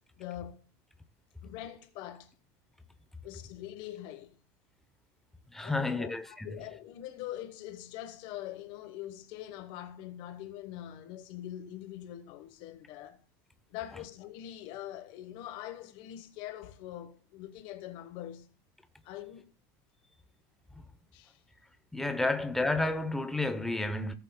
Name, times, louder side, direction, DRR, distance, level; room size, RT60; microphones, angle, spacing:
voice 1, 0.2-0.6 1.4-2.3 3.2-4.4 5.6-13.2 13.7-18.5 19.0-19.5 21.1-21.4, left 12 dB, 45° left, 1.1 m, -43 dB
voice 2, 5.5-6.5 21.9-24.1, left 2 dB, 5° left, 0.7 m, -31 dB
17.0 x 8.1 x 2.2 m
cardioid pair, 175°, 11 cm